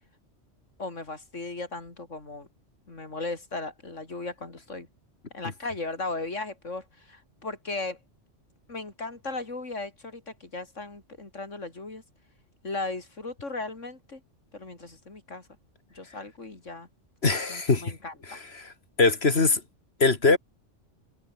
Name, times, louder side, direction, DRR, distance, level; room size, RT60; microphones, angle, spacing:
voice 1, 0.8-2.5 2.9-4.9 5.3-8.0 8.7-12.0 12.6-14.2 14.5-15.5 15.9-16.9 17.5-18.4, left 3 dB, 80° left, 4.1 m, -36 dB
voice 2, 17.2-17.8 18.3-18.7 19.0-19.6 20.0-20.4, left 3 dB, 55° left, 2.4 m, -22 dB
omnidirectional pair, 1.2 m